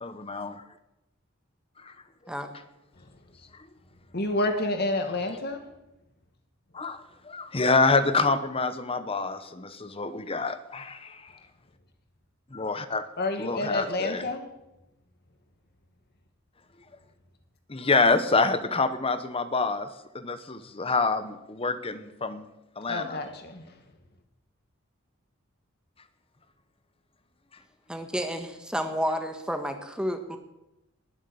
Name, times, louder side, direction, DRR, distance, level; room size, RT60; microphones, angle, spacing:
voice 1, 0.0-0.6 6.7-7.0 7.3-11.2 12.5-13.0 13.4-14.2 17.7-19.9 20.1-22.5 22.8-23.2, left 3 dB, 25° left, 11 dB, 0.9 m, -26 dB
voice 2, 4.1-5.6 13.2-14.4 22.9-23.6, left 2 dB, 50° left, 6 dB, 2.0 m, -29 dB
voice 3, 27.9-30.4, equal, 5° right, 6 dB, 1.4 m, -31 dB
20.0 x 7.3 x 7.0 m, 0.92 s
head